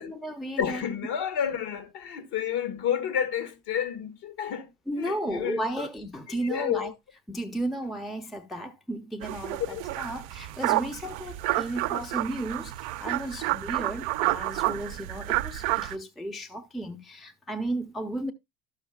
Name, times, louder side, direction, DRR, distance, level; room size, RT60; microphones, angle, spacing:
voice 1, 0.0-0.8 4.9-6.9 7.3-18.3, right 1 dB, ahead, 0.6 m, -34 dB
voice 2, 0.6-4.7 5.0-5.9 6.3-6.9 9.7-9.8, left 9 dB, 50° left, 1.4 m, -30 dB
sound 1, 9.2-16.0, right 18 dB, 70° right, 0.6 m, -30 dB
12.0 x 6.5 x 2.3 m
hypercardioid pair, 80°, 50 cm